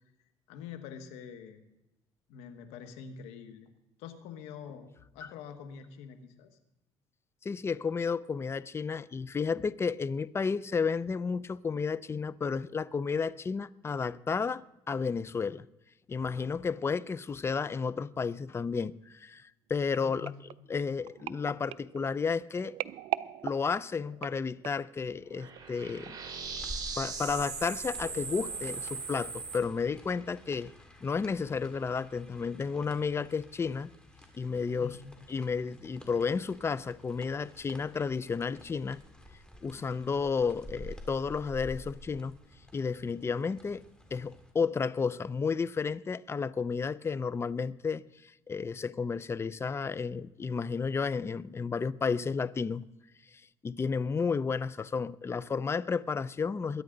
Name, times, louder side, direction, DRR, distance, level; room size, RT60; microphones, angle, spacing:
voice 1, 0.5-1.6 2.3-3.7 4.0-6.6 19.9-20.3 34.8-35.2, left 7 dB, 90° left, 1.5 m, -45 dB
voice 2, 7.4-15.7 16.1-20.3 20.7-22.7 23.4-26.2 27.0-30.7 31.0-33.9 34.4-35.0 35.3-39.0 39.6-42.4 42.7-43.8 44.1-48.0 48.5-52.8 53.6-56.8, left 5 dB, 25° left, 0.5 m, -32 dB
sound 1, 19.9-25.0 25.6-25.8 26.1-26.2, right 14 dB, 70° right, 0.4 m, -40 dB
sound 2, 25.3-29.6, right 5 dB, 40° right, 2.9 m, -39 dB
sound 3, 26.4-44.5, equal, 10° left, 2.8 m, -50 dB
22.0 x 9.7 x 3.9 m
cardioid pair, 95°, 10 cm